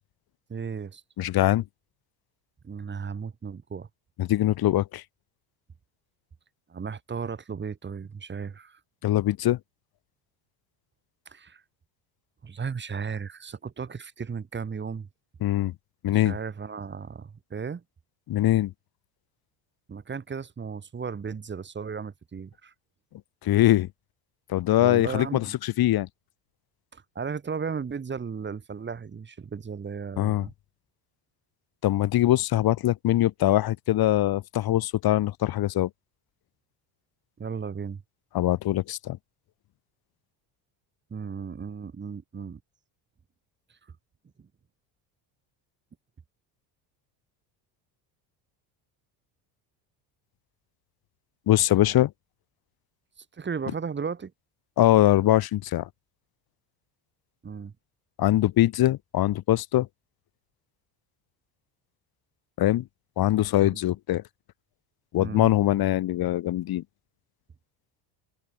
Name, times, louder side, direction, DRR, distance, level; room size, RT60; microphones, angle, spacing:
voice 1, 0.5-1.0 2.6-3.9 6.7-8.8 11.3-11.6 12.4-15.1 16.1-17.8 19.9-22.7 24.8-25.6 26.9-30.5 37.4-38.0 41.1-42.6 44.4-44.5 53.3-54.3 57.4-57.7 63.6-63.8 65.2-65.5, right 6 dB, 25° right, 3.5 m, -35 dB
voice 2, 1.2-1.6 4.2-5.0 9.0-9.6 15.4-15.7 16.0-16.3 18.3-18.7 23.4-23.9 24.5-26.1 30.2-30.5 31.8-35.9 38.3-39.2 51.5-52.1 54.8-55.9 58.2-59.9 62.6-62.9 63.2-64.2 65.1-66.8, left 14 dB, 55° left, 2.9 m, -22 dB
cardioid pair, 125°, 44 cm